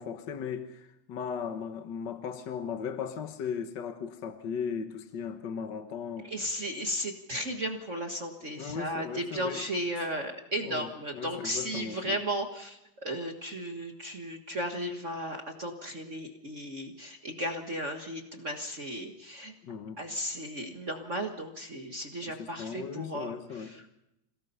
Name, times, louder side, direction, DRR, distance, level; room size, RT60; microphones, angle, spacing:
voice 1, 0.0-6.3 8.5-9.7 10.6-10.9 11.1-12.2 19.6-20.0 22.3-23.7, left 7 dB, 55° left, 7 dB, 1.2 m, -37 dB
voice 2, 6.2-19.5 20.0-23.8, equal, 45° right, 3 dB, 1.0 m, -35 dB
27.5 x 17.5 x 5.5 m, 0.84 s
omnidirectional pair, 3.7 m